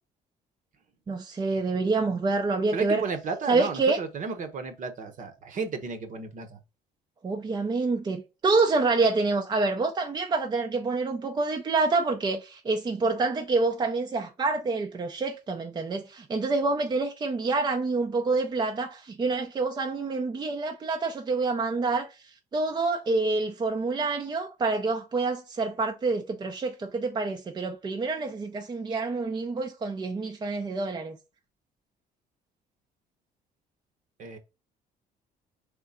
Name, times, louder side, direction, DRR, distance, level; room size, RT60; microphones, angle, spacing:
voice 1, 1.1-3.0 3.5-4.0 7.2-22.2 22.5-31.2, right 3 dB, 25° right, 0.5 m, -27 dB
voice 2, 2.7-6.6 34.2-34.4, right 5 dB, 50° right, 1.0 m, -33 dB
3.7 x 3.4 x 4.2 m
cardioid pair, 110°, 17 cm